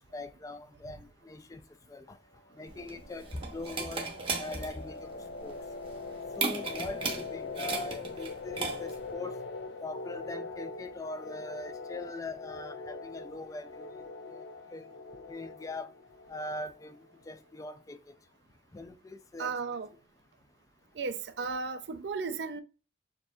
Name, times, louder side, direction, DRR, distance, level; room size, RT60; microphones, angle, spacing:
voice 1, 0.0-1.6 1.9-2.2 2.6-4.1 4.4-5.6 6.4-9.4 9.8-13.9 14.7-14.8 15.3-15.9 16.3-17.0 17.3-18.0 18.7-19.5, left 2 dB, 20° left, 0.3 m, -41 dB
sound 1, 2.7-17.2, left 3 dB, 85° left, 0.5 m, -43 dB
sound 2, 2.7-9.1, right 4 dB, 30° right, 0.7 m, -36 dB
voice 2, 19.4-19.9 21.0-22.6, right 4 dB, 75° right, 0.5 m, -35 dB
6.4 x 2.6 x 2.3 m
head